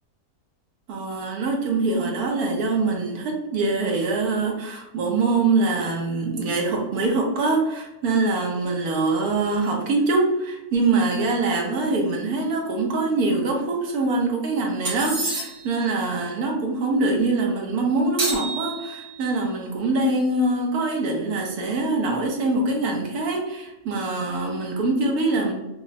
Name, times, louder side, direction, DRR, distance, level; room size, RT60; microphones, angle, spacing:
voice 1, 0.9-25.5, right 3 dB, 75° right, 0 dB, 1.2 m, -24 dB
sound 1, 14.8-15.8 18.2-19.3, right 2 dB, 35° right, 0.6 m, -29 dB
5.4 x 2.0 x 2.7 m, 0.95 s
omnidirectional pair, 1.6 m